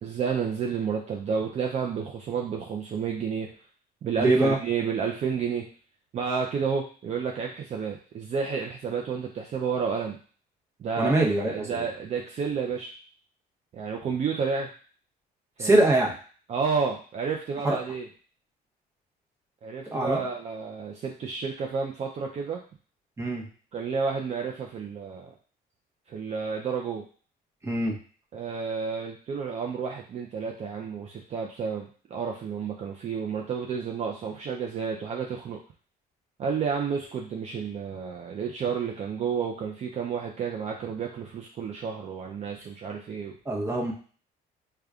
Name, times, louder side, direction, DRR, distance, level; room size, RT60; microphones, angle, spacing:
voice 1, 0.0-3.5 4.0-5.6 6.1-10.2 10.8-12.9 13.7-14.7 15.6-15.8 16.5-18.1 19.6-22.6 23.7-25.3 26.1-27.0 28.3-35.6 36.4-43.4, right 6 dB, 40° right, 0 dB, 0.5 m, -31 dB
voice 2, 4.2-4.6 11.0-11.9 15.6-16.1 17.6-17.8 19.9-20.3 23.2-23.4 27.6-28.0 43.4-43.9, right 2 dB, 15° right, -1 dB, 0.9 m, -23 dB
5.0 x 2.2 x 2.3 m, 0.42 s
cardioid pair, 110°, 17 cm